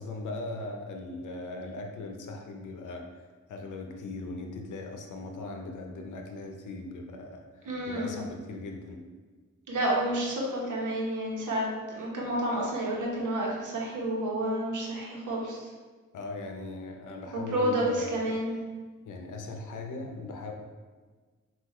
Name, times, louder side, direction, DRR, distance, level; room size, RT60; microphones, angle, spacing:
voice 1, 0.0-3.1 3.5-9.0 16.1-18.2 19.1-20.5, left 3 dB, 90° left, 3 dB, 0.6 m, -39 dB
voice 2, 7.7-8.1 9.7-15.6 17.5-18.5, right 1 dB, 85° right, -3 dB, 1.0 m, -30 dB
5.7 x 2.5 x 3.0 m, 1.4 s
cardioid pair, 60°, 30 cm